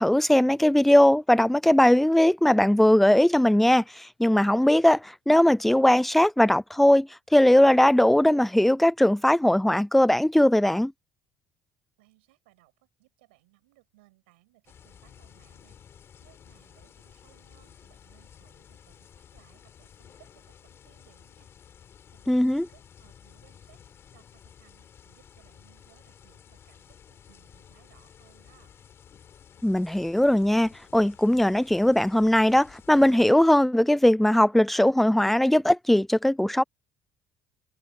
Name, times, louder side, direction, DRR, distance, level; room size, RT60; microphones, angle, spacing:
voice 1, 0.0-10.9 22.3-22.7 29.6-36.6, left 1 dB, 5° left, 0.3 m, -20 dB
voice 2, 12.0-15.8 16.2-21.5 22.1-23.8 24.1-28.7, right 21 dB, 90° right, 7.8 m, -63 dB
sound 1, 14.7-33.3, left 8 dB, 50° left, 3.6 m, -53 dB
hypercardioid pair, 70°, 6 cm